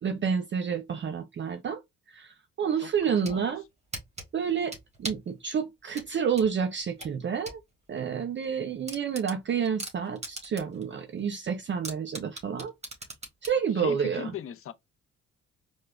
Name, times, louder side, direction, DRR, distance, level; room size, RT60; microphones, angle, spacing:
voice 1, 0.0-1.8 2.1-3.6 4.3-4.7 5.0-7.6 7.9-12.7 13.4-14.3, right 7 dB, 40° right, 0.5 m, -29 dB
voice 2, 2.8-3.6 13.7-14.7, left 9 dB, 45° left, 0.5 m, -39 dB
sound 1, 2.9-3.4 3.9-5.3 5.9-7.6 8.0-8.1 8.4-8.5 8.9-10.8 11.2-11.3 11.8-13.6, right 2 dB, 20° right, 1.4 m, -39 dB
4.6 x 2.1 x 2.3 m
cardioid pair, 90°, 30 cm